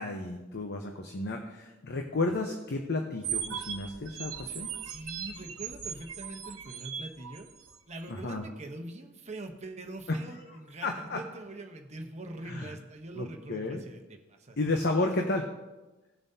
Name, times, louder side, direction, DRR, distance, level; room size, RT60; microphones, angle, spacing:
voice 1, 0.0-4.7 8.1-8.4 10.1-10.2 10.8-11.2 12.5-12.7 13.2-13.8 14.6-15.5, left 2 dB, 55° left, 3 dB, 0.9 m, -32 dB
sound 1, 3.2-7.8, right 8 dB, 85° right, 1.0 m, -38 dB
voice 2, 4.8-7.5 7.9-14.0 14.3-15.1, right 2 dB, 35° right, 4 dB, 1.0 m, -43 dB
18.5 x 7.3 x 2.8 m, 1.1 s
head